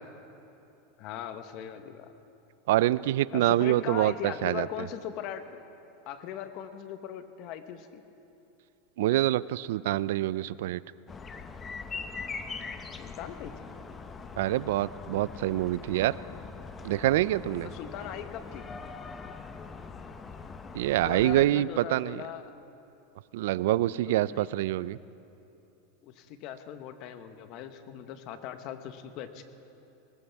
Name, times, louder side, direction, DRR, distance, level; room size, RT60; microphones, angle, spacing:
voice 1, 1.0-2.1 3.3-5.6 6.1-8.0 13.0-13.7 17.6-18.7 21.0-22.6 24.1-24.5 26.0-29.4, left 9 dB, 50° left, 9 dB, 1.0 m, -40 dB
voice 2, 2.7-4.7 9.0-10.8 14.4-16.2 16.8-17.7 20.7-22.2 23.3-25.0, right 15 dB, 75° right, 19 dB, 0.3 m, -26 dB
sound 1, 11.1-21.5, left 5 dB, 20° left, 0.7 m, -42 dB
20.5 x 19.0 x 3.5 m, 2.9 s
supercardioid pair, 130°, 0 cm